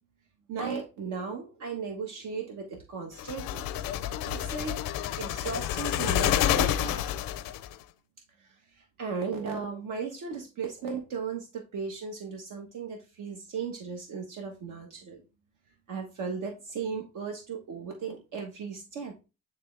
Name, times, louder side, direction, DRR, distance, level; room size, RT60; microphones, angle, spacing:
voice 1, 0.5-3.6 4.3-4.8 5.2-7.0 8.4-15.2 15.9-19.2, right 5 dB, 65° right, 2 dB, 1.3 m, -36 dB
sound 1, 3.2-7.7, left 12 dB, 90° left, 0.6 m, -29 dB
9.5 x 3.5 x 3.3 m, 0.29 s
cardioid pair, 155°, 33 cm